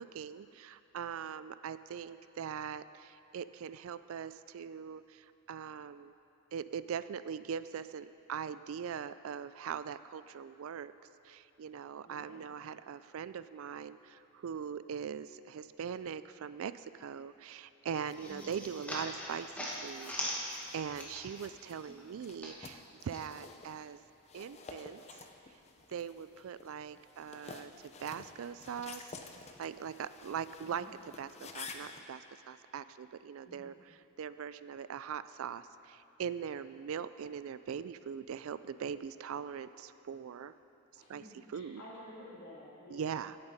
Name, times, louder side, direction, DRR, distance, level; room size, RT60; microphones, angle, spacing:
voice 1, 0.0-6.1 6.5-10.9 11.2-24.0 24.3-25.0 25.9-29.1 29.6-33.7 34.2-40.5 41.1-41.2 41.5-41.8 42.9-43.4, right 7 dB, 65° right, 14 dB, 0.3 m, -41 dB
voice 2, 12.0-12.4 18.2-18.5 30.6-30.9 33.4-33.7 41.0-43.2, left 1 dB, 90° left, -6 dB, 3.1 m, -52 dB
sound 1, 17.9-21.5 21.8-23.2, equal, 5° left, 1.3 m, -41 dB
sound 2, 18.1-32.0, left 4 dB, 30° left, 0.5 m, -52 dB
16.5 x 8.7 x 4.1 m, 2.9 s
head